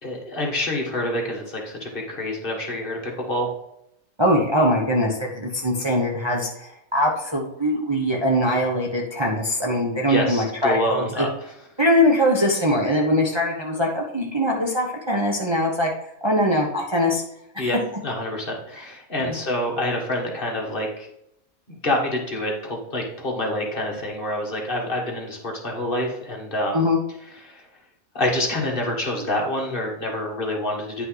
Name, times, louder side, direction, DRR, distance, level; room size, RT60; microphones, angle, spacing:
voice 1, 0.0-3.5 10.1-11.3 17.6-17.8 18.0-21.1 21.8-26.8 27.5-27.6 28.1-31.1, left 1 dB, 40° left, -1 dB, 1.9 m, -27 dB
voice 2, 4.2-11.3 11.8-15.9 16.2-17.2 17.5-17.7 19.2-19.4 26.7-27.0, equal, 20° right, -1 dB, 1.1 m, -22 dB
9.8 x 5.5 x 4.0 m, 0.78 s
omnidirectional pair, 1.4 m